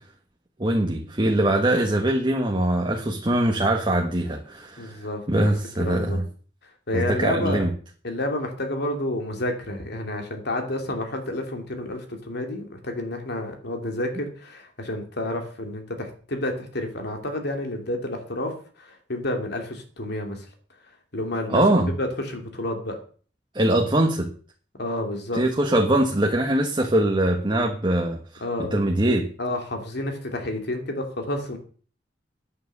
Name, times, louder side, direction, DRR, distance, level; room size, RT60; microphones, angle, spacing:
voice 1, 0.6-5.0 5.3-6.2 6.9-7.7 21.5-21.9 23.5-24.3 25.3-28.4 28.7-29.2, right 1 dB, 25° right, 2 dB, 1.4 m, -22 dB
voice 2, 4.8-5.5 5.8-6.2 6.9-7.6 8.0-20.5 21.1-21.6 22.0-23.0 24.7-25.4 28.4-28.8 29.4-31.6, left 1 dB, 60° left, 4 dB, 2.7 m, -30 dB
9.8 x 9.2 x 6.7 m, 0.42 s
head